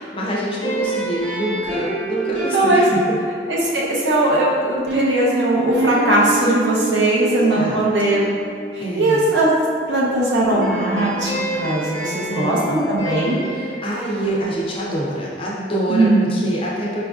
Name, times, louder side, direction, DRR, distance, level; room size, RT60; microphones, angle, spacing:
voice 1, 0.0-3.2 7.3-7.8 8.8-9.3 12.3-12.9 13.5-17.0, right 1 dB, 30° left, -5 dB, 0.4 m, -26 dB
sound 1, 0.6-9.4 10.4-14.9, right 2 dB, 35° right, 0.8 m, -28 dB
voice 2, 2.5-2.9 3.5-8.3 8.7-9.5 9.9-13.5 15.9-16.3, right 1 dB, 70° right, -5 dB, 0.6 m, -19 dB
4.2 x 2.5 x 2.3 m, 2.2 s
head